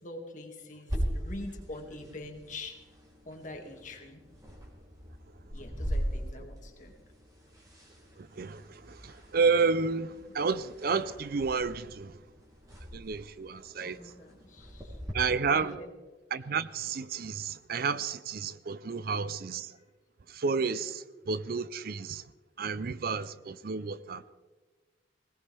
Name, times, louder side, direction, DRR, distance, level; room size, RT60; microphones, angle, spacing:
voice 1, 0.0-2.8 3.2-4.2 5.5-7.0 13.8-15.0 15.5-15.9, left 2 dB, 45° left, 2.1 m, -44 dB
sound 1, 0.9-15.1, equal, 20° right, 3.3 m, -40 dB
voice 2, 8.2-12.1 12.9-14.0 15.1-15.7 16.3-19.7 20.3-22.2 22.6-24.2, right 5 dB, 55° right, 0.5 m, -31 dB
20.0 x 18.0 x 3.4 m
head